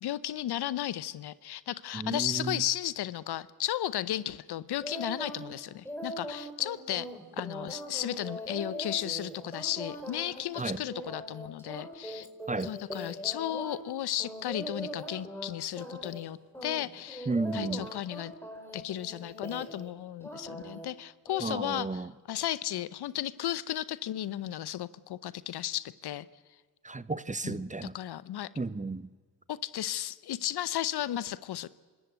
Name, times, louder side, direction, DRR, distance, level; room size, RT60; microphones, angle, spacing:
voice 1, 0.0-7.1 7.3-12.3 12.6-18.3 18.7-26.3 27.4-27.6 27.9-28.5 29.5-31.7, left 12 dB, 65° left, 18 dB, 0.8 m, -34 dB
voice 2, 1.9-2.6 10.6-10.8 12.5-12.7 17.3-17.9 21.4-22.1 26.8-28.0 28.6-29.1, right 3 dB, 15° right, 16 dB, 0.9 m, -33 dB
sound 1, 4.8-5.5 5.8-13.8 14.2-15.5 15.8-16.3 16.5-19.9 20.2-20.9 21.3-21.5, equal, 5° left, 4.7 m, -41 dB
25.5 x 13.5 x 9.2 m, 1.5 s
supercardioid pair, 50°, 42 cm